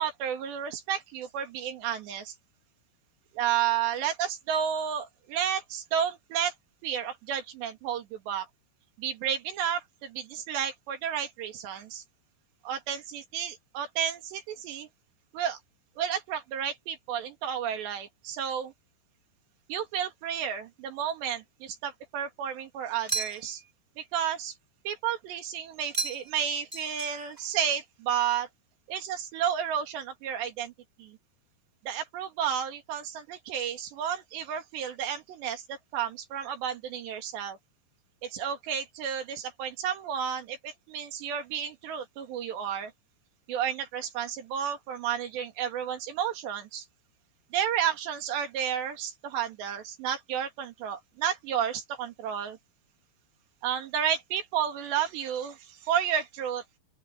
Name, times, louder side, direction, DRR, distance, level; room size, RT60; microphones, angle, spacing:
voice 1, 0.0-2.3 3.3-6.5 6.8-8.5 9.0-12.0 12.6-14.9 15.3-15.6 16.0-18.7 19.7-23.6 24.0-24.5 24.9-28.5 28.9-30.7 31.0-31.2 31.8-37.6 38.2-42.9 43.5-46.9 47.5-52.6 53.6-56.6, right 9 dB, 75° right, 4.4 m, -31 dB
sound 1, 23.1-23.7 25.9-26.4 26.7-27.5, right 4 dB, 10° right, 1.0 m, -34 dB
open air
omnidirectional pair, 5.1 m